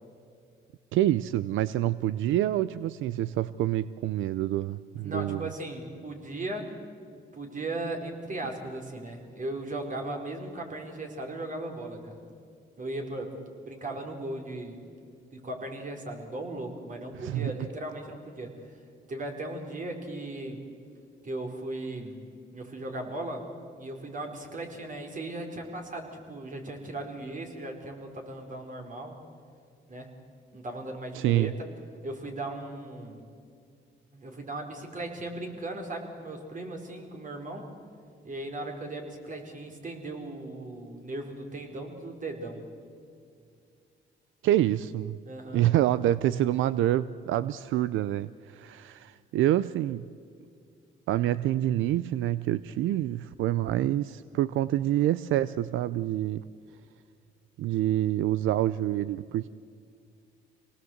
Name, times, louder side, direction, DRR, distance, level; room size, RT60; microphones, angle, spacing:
voice 1, 0.9-5.5 17.1-17.5 31.1-31.5 44.4-45.2 45.5-50.0 51.1-56.4 57.6-59.5, right 13 dB, 85° right, 16 dB, 0.5 m, -27 dB
voice 2, 5.0-6.7 7.3-12.2 12.8-14.8 15.3-18.8 19.1-20.6 21.2-22.2 22.5-23.5 23.8-29.2 29.9-30.1 30.5-31.5 32.0-33.2 34.1-37.7 38.2-42.6 45.3-45.6, right 2 dB, 40° right, 3 dB, 4.5 m, -37 dB
26.0 x 19.0 x 8.0 m, 2.3 s
cardioid pair, 90°, 20 cm